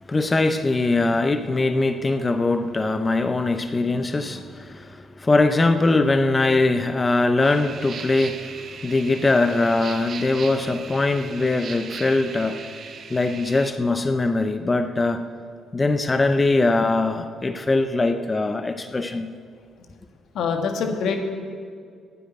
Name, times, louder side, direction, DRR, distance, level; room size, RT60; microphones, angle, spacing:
voice 1, 0.1-8.5 8.8-12.6 13.1-15.3 15.7-19.3, left 2 dB, 25° left, 8 dB, 0.6 m, -21 dB
voice 2, 3.9-4.4 20.3-21.2, left 5 dB, 75° left, 5 dB, 1.4 m, -26 dB
sound 1, 7.4-13.7, right 6 dB, 55° right, 0.9 m, -38 dB
9.5 x 8.0 x 9.3 m, 2.2 s
cardioid pair, 90°, 0 cm